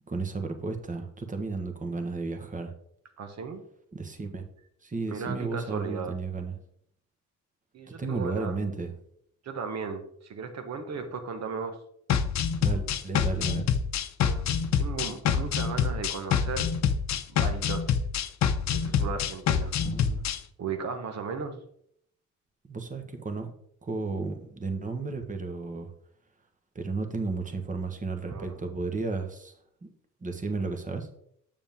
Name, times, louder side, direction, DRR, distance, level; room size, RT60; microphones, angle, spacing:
voice 1, 0.1-2.7 3.9-4.5 4.8-6.6 7.9-8.9 12.6-13.7 19.8-20.3 22.6-23.5 23.8-25.9 26.7-29.9 30.2-31.1, right 3 dB, 25° right, 6 dB, 1.3 m, -33 dB
voice 2, 3.2-3.6 5.1-6.2 7.7-8.6 9.4-11.8 14.2-14.5 14.8-16.7 17.3-17.9 18.7-19.7 20.6-21.6 28.2-28.6, right 5 dB, 60° right, 7 dB, 1.3 m, -36 dB
sound 1, 12.1-20.4, left 7 dB, 65° left, 0.7 m, -26 dB
7.3 x 7.0 x 3.6 m, 0.69 s
cardioid pair, 90°, 30 cm